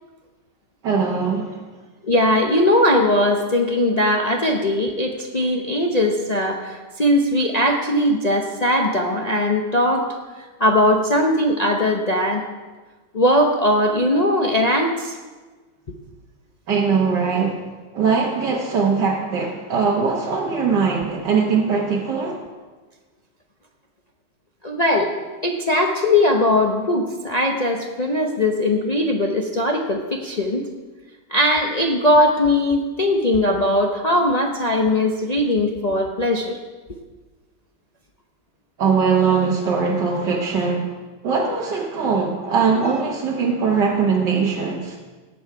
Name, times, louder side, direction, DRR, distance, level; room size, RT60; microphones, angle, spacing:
voice 1, 0.8-1.6 16.7-17.6 17.9-22.4 38.8-40.9 41.2-45.0, right 5 dB, 80° right, -2 dB, 1.8 m, -21 dB
voice 2, 2.0-10.0 10.6-12.4 13.1-15.2 24.6-25.1 25.4-30.7 31.3-36.6, left 1 dB, 35° left, 1 dB, 0.6 m, -19 dB
16.5 x 7.9 x 4.7 m, 1.3 s
omnidirectional pair, 1.8 m